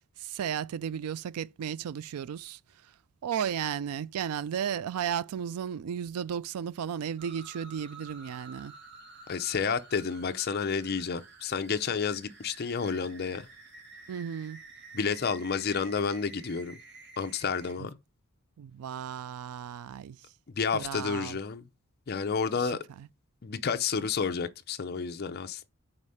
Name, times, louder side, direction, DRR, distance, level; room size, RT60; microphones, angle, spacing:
voice 1, 0.2-2.9 3.2-8.7 14.1-14.6 17.8-17.9 18.6-20.3 20.7-21.4 22.6-22.7 23.0-23.1, right 8 dB, 85° right, 0.3 m, -34 dB
sound 1, 7.2-17.7, right 3 dB, 50° right, 2.1 m, -50 dB
voice 2, 9.3-13.5 14.9-16.8 17.2-18.0 20.6-21.6 22.1-22.8 23.4-25.7, left 5 dB, 45° left, 0.5 m, -30 dB
4.9 x 4.2 x 5.5 m
head